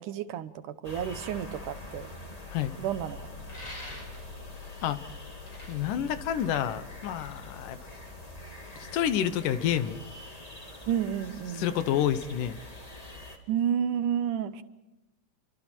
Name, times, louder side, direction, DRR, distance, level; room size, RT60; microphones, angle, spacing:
voice 1, 0.0-2.1 2.8-3.3 10.9-11.7 13.5-14.6, right 9 dB, 80° right, 11 dB, 2.6 m, -31 dB
sound 1, 0.8-13.4, left 2 dB, 15° left, 2.0 m, -44 dB
sound 2, 3.5-4.5 5.2-7.0, left 1 dB, 35° left, 6.6 m, -45 dB
voice 2, 5.7-7.8 8.8-10.0 11.5-12.6, left 10 dB, 90° left, 12 dB, 2.8 m, -29 dB
29.0 x 24.5 x 4.5 m, 0.99 s
omnidirectional pair, 3.6 m